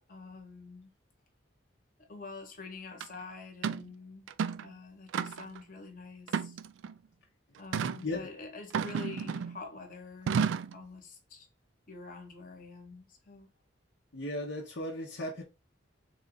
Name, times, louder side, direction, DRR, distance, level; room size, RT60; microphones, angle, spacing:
voice 1, 0.1-0.9 2.1-4.3 4.6-6.6 7.6-10.4 10.7-11.5 11.9-13.5, left 4 dB, 45° left, 1.1 m, -46 dB
sound 1, 3.0-3.1 3.6-3.9 4.3-4.7 5.1-5.6 6.3-6.9 7.7-8.0 8.7-9.6 10.3-10.8, right 6 dB, 75° right, 0.3 m, -32 dB
voice 2, 14.1-15.4, left 1 dB, 60° left, 0.7 m, -36 dB
3.8 x 2.4 x 3.7 m
head